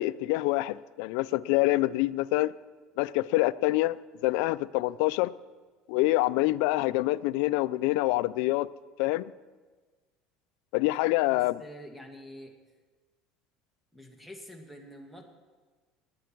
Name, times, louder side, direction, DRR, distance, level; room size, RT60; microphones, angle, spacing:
voice 1, 0.0-2.5 3.0-4.0 4.2-5.3 5.9-8.7 9.0-9.3 10.7-11.5, left 19 dB, 80° left, 17 dB, 0.4 m, -26 dB
voice 2, 10.8-12.5 13.9-15.2, equal, ahead, 2 dB, 2.2 m, -47 dB
20.0 x 9.4 x 4.6 m, 1.4 s
supercardioid pair, 115°, 0 cm